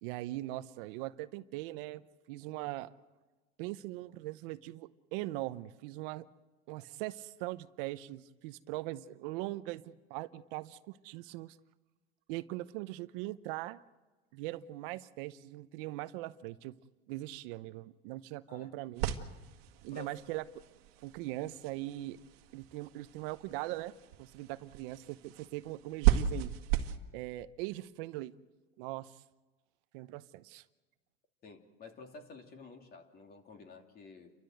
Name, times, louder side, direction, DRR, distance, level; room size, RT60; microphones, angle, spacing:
voice 1, 0.0-2.9 3.6-6.3 6.7-11.6 12.3-13.8 14.3-16.8 17.1-19.1 19.8-20.4 21.0-22.2 22.5-26.5 27.1-28.3 28.8-29.2 29.9-30.6, right 17 dB, 65° right, 13 dB, 0.8 m, -41 dB
sound 1, 19.0-27.0, right 12 dB, 85° right, 1.7 m, -35 dB
voice 2, 19.9-20.2 31.4-34.3, left 4 dB, 30° left, 5 dB, 2.8 m, -51 dB
30.0 x 13.5 x 7.9 m, 1.2 s
supercardioid pair, 140°, 29 cm